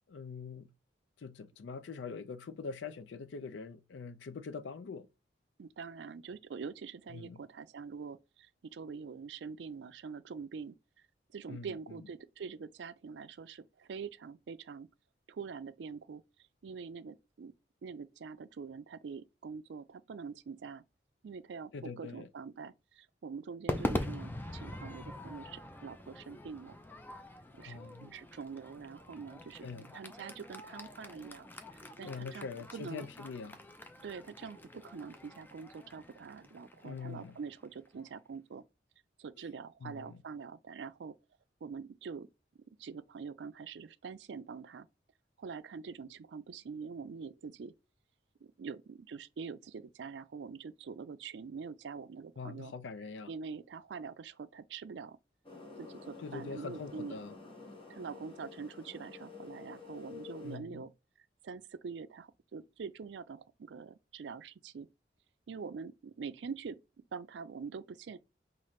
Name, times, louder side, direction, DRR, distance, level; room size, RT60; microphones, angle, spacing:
voice 1, 0.1-0.7 1.2-5.1 7.1-7.4 11.5-12.0 21.7-22.3 27.6-28.1 29.6-29.9 32.0-33.6 36.8-37.4 39.8-40.2 52.4-53.3 56.2-57.3 60.4-60.8, left 5 dB, 90° left, 0.4 m, -43 dB
voice 2, 5.6-11.1 11.3-14.9 15.3-16.2 16.6-17.5 17.8-20.8 21.2-26.8 27.6-33.1 34.0-38.6 39.2-41.2 41.6-42.3 42.8-44.9 45.4-47.7 48.4-52.7 53.3-55.2 55.8-57.2 57.9-60.9 61.2-64.9 65.5-66.8 67.1-68.2, right 5 dB, 75° right, 0.4 m, -45 dB
Crowd / Fireworks, 23.7-38.1, left 1 dB, 10° left, 0.4 m, -43 dB
sound 1, 55.4-60.6, left 4 dB, 30° left, 1.2 m, -50 dB
5.7 x 2.5 x 3.1 m
head